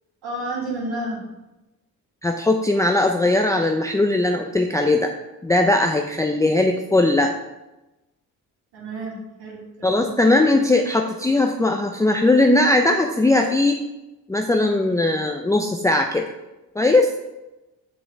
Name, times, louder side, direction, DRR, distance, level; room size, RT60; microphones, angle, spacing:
voice 1, 0.2-1.2 8.7-10.1, right 1 dB, 85° right, -6 dB, 2.8 m, -31 dB
voice 2, 2.2-5.1 5.4-7.3 9.8-13.8 14.3-16.3 16.8-17.1, left 2 dB, 10° left, 4 dB, 0.5 m, -19 dB
6.6 x 5.2 x 4.6 m, 1.0 s
supercardioid pair, 70°, 39 cm